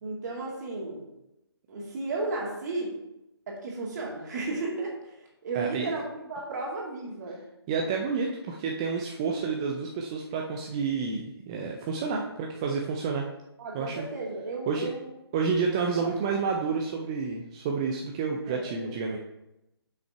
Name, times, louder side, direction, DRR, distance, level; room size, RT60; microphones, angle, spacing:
voice 1, 0.0-1.0 1.7-3.0 3.5-7.4 13.6-15.1 16.0-16.1 18.5-18.9, right 3 dB, 40° right, -2 dB, 2.2 m, -34 dB
voice 2, 5.5-5.9 7.7-13.2 13.7-14.1 14.7-14.9 15.3-19.2, right 5 dB, 15° right, 0 dB, 0.3 m, -29 dB
6.1 x 5.7 x 4.5 m, 0.89 s
hypercardioid pair, 155°, 14 cm